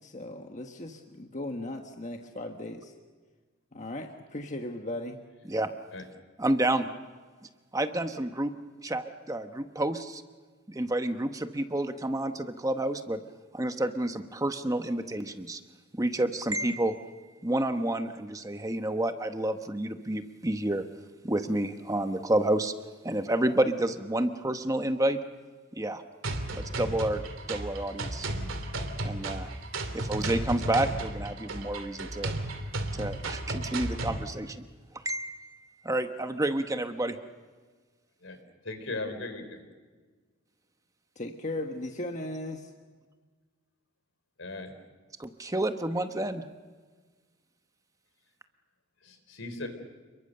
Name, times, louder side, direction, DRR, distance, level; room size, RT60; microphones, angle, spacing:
voice 1, 0.0-2.9 3.7-5.2 41.1-42.7, left 1 dB, 35° left, 4 dB, 1.4 m, -37 dB
voice 2, 6.4-6.9 7.7-8.5 8.8-10.2 10.7-13.2 13.5-15.6 15.9-17.1 17.4-20.8 21.2-22.7 23.0-25.2 25.8-26.0 26.5-27.2 27.5-28.3 29.0-29.5 29.9-32.3 32.9-34.6 35.0-37.2 45.2-46.4, right 1 dB, 15° right, 8 dB, 1.0 m, -29 dB
sound 1, 26.2-34.2, right 2 dB, 80° right, 3.0 m, -34 dB
voice 3, 38.6-39.6 44.4-44.7 49.0-49.7, left 2 dB, 75° left, 7 dB, 4.2 m, -37 dB
29.0 x 22.5 x 6.7 m, 1.4 s
head